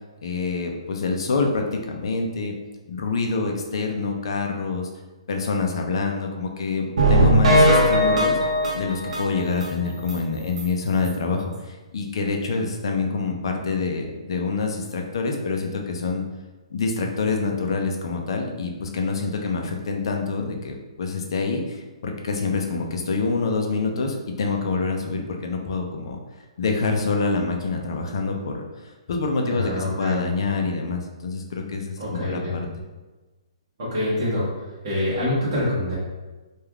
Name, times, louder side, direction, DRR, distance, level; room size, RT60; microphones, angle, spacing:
voice 1, 0.2-2.5 2.9-4.9 5.3-8.4 8.7-16.2 16.7-26.2 26.6-32.4, left 4 dB, 50° left, 2 dB, 0.4 m, -26 dB
sound 1, 7.0-9.7 10.1-10.2 10.6-10.7 11.0-11.1, equal, 75° right, 0.6 m, -18 dB
voice 2, 29.4-30.2 32.0-32.6 33.8-34.5 34.8-36.0, left 1 dB, 35° right, -9 dB, 0.9 m, -25 dB
3.2 x 2.3 x 2.3 m, 1.2 s
hypercardioid pair, 170°, 3 cm